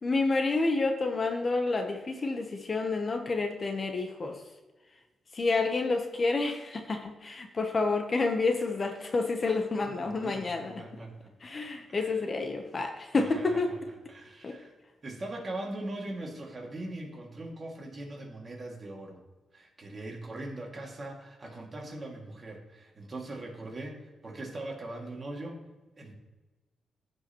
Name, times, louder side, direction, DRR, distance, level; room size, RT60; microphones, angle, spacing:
voice 1, 0.0-4.4 5.3-10.8 11.4-13.7 14.4-14.6, left 3 dB, 35° left, 5 dB, 0.8 m, -29 dB
voice 2, 9.8-11.3 11.9-12.2 13.1-13.8 14.1-14.7 15.0-19.2 19.5-24.0 24.2-25.6 26.0-26.1, right 2 dB, 30° right, 0 dB, 2.1 m, -41 dB
15.5 x 5.5 x 3.0 m, 1.2 s
cardioid pair, 120°, 0 cm